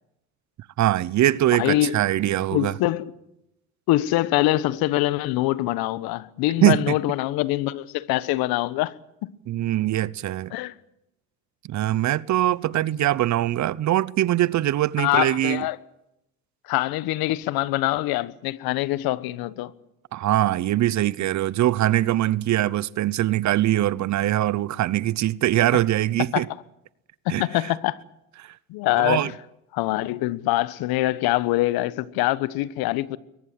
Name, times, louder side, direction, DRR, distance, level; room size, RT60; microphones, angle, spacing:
voice 1, 0.8-2.7 6.6-6.9 9.5-10.5 11.7-15.6 20.1-26.5 27.3-27.4 29.0-29.3, right 14 dB, 45° right, 0.9 m, -22 dB
voice 2, 1.6-2.1 2.5-3.1 3.9-8.9 9.2-9.3 10.5-10.7 15.0-15.8 16.6-19.7 26.3-26.5 27.2-28.0 28.7-29.4 29.7-33.2, left 17 dB, 65° left, 1.2 m, -24 dB
22.5 x 19.0 x 7.6 m
supercardioid pair, 90°, 38 cm